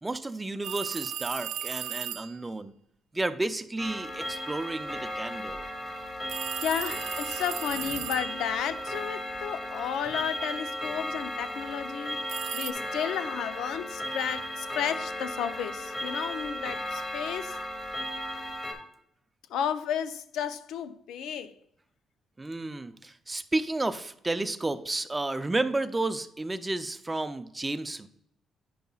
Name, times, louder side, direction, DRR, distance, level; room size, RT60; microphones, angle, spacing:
voice 1, 0.0-2.7 3.1-5.7 22.4-28.1, right 2 dB, 15° right, 0.5 m, -32 dB
sound 1, 0.6-2.4 6.3-8.6 12.3-12.7, right 11 dB, 90° right, 0.3 m, -36 dB
Clock, 3.8-18.7, equal, 30° left, 1.7 m, -35 dB
voice 2, 6.6-12.2 12.5-17.6 19.5-21.5, left 9 dB, 85° left, 0.5 m, -33 dB
9.2 x 5.3 x 2.4 m
cardioid pair, 90°, 0 cm